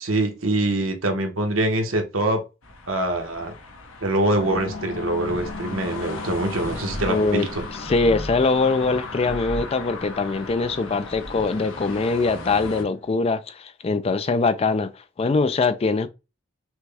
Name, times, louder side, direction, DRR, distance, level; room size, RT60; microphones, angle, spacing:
voice 1, 0.0-2.4 2.9-3.5 4.0-7.6, right 1 dB, 75° right, 1.1 m, -24 dB
sound 1, 2.6-12.8, left 3 dB, 80° left, 1.0 m, -38 dB
sound 2, 4.3-13.1, left 2 dB, 50° left, 1.0 m, -37 dB
voice 2, 7.1-7.5 7.8-14.9 15.2-16.1, left 3 dB, 30° left, 0.3 m, -22 dB
6.0 x 2.2 x 3.3 m
head